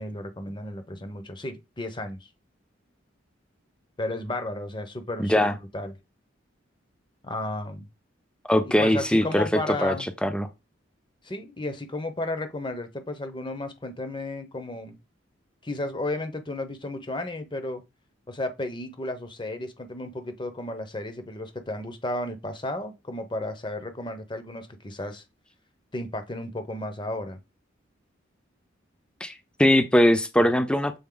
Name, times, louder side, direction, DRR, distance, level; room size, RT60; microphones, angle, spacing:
voice 1, 0.0-2.2 4.0-5.3 5.7-5.9 7.2-7.9 8.6-10.1 11.2-15.0 15.6-17.8 18.3-25.2 25.9-27.4, left 1 dB, 25° left, 0.9 m, -33 dB
voice 2, 5.2-5.5 8.5-9.9 10.2-10.5 29.2-29.3 29.6-31.0, left 1 dB, 5° left, 0.6 m, -21 dB
7.0 x 4.0 x 3.9 m
head